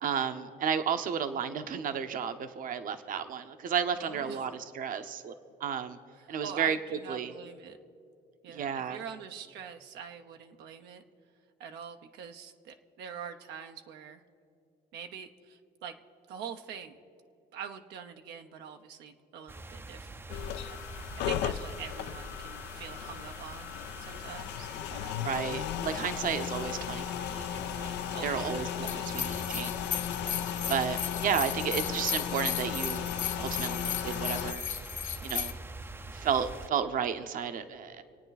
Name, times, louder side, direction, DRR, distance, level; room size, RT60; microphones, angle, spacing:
voice 1, 0.0-5.3 5.6-6.0 6.3-7.3 8.5-9.0 25.1-27.9 28.2-28.7 29.1-29.8 30.7-33.1 33.4-34.7 35.2-35.6 36.1-38.0, right 7 dB, 55° right, 8 dB, 0.9 m, -32 dB
voice 2, 4.0-4.5 6.1-7.8 8.4-11.0 11.6-14.2 14.9-15.9 16.3-17.0 17.5-20.8 21.2-23.7 24.0-25.3 25.5-25.6 28.1-29.6 31.3-31.5, right 7 dB, 85° right, 5 dB, 0.9 m, -45 dB
sound 1, 19.5-36.7, right 2 dB, 15° right, 0.5 m, -45 dB
sound 2, 20.3-34.5, left 10 dB, 85° left, 0.6 m, -36 dB
sound 3, 28.9-35.5, left 9 dB, 45° left, 0.7 m, -36 dB
26.5 x 9.0 x 4.1 m, 2.6 s
cardioid pair, 110°, 17 cm